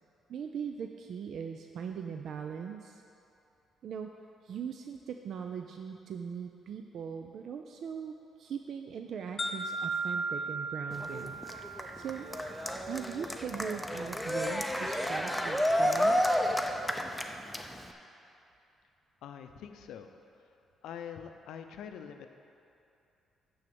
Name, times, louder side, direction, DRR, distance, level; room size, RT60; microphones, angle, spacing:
voice 1, 0.3-3.0 3.8-4.1 4.4-11.4 11.9-12.3 12.9-16.4, right 7 dB, 65° right, 4 dB, 0.4 m, -40 dB
sound 1, 9.4-13.4, right 3 dB, 40° left, 0.8 m, -37 dB
Cheering, 10.9-17.9, equal, ahead, 0.6 m, -31 dB
voice 2, 19.2-20.2 20.8-22.3, left 8 dB, 80° left, 7 dB, 0.5 m, -44 dB
6.5 x 6.3 x 6.9 m, 2.7 s
cardioid pair, 90°, 0 cm